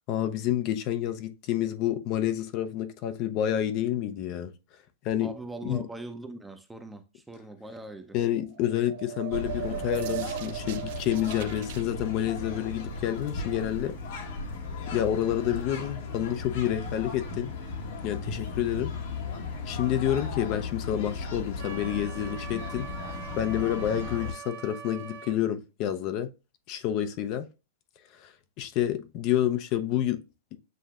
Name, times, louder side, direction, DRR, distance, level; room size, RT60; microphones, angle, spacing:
voice 1, 0.1-4.5 5.0-5.3 5.6-5.9 8.1-13.9 14.9-17.5 18.0-18.9 19.7-22.9 23.4-26.3 26.7-27.5 28.2-30.2, left 11 dB, 45° left, 0.5 m, -29 dB
voice 2, 5.2-8.1, right 2 dB, 5° right, 0.6 m, -41 dB
sound 1, 8.5-11.8, right 12 dB, 60° right, 0.4 m, -37 dB
sound 2, 9.3-24.3, left 4 dB, 65° left, 1.1 m, -36 dB
Wind instrument woodwind instrument, 21.6-25.4, right 7 dB, 80° right, 1.2 m, -43 dB
7.5 x 2.6 x 2.3 m
hypercardioid pair, 135°, 0 cm